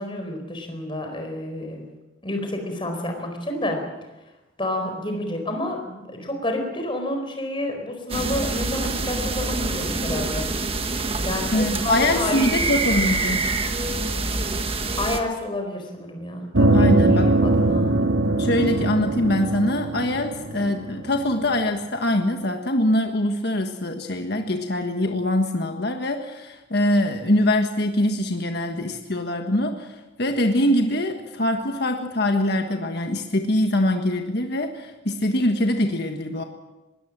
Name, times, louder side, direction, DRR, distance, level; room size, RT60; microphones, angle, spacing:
voice 1, 0.0-1.8 2.2-3.8 4.6-10.5 11.2-12.6 15.0-17.9, left 1 dB, 25° left, 4 dB, 4.4 m, -29 dB
sound 1, 8.1-15.2, right 3 dB, 30° right, 1.4 m, -26 dB
voice 2, 11.5-13.4 16.7-17.3 18.4-36.4, left 1 dB, 55° left, 4 dB, 1.5 m, -23 dB
sound 2, 16.5-21.4, right 2 dB, 85° right, 1.7 m, -21 dB
22.0 x 18.0 x 7.5 m, 1.1 s
head